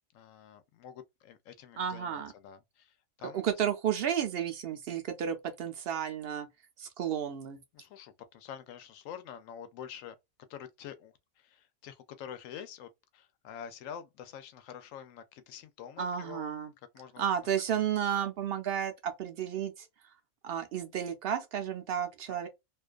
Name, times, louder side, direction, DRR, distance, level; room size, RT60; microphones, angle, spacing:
voice 1, 0.1-3.4 7.7-10.2 10.5-16.5 16.9-17.3 17.7-17.8 22.3-22.5, left 9 dB, 85° left, 1.0 m, -47 dB
voice 2, 1.8-2.3 3.2-6.5 6.8-7.6 16.0-16.7 17.2-19.9 20.4-22.5, right 9 dB, 65° right, 0.6 m, -32 dB
2.5 x 2.3 x 2.3 m
omnidirectional pair, 1.3 m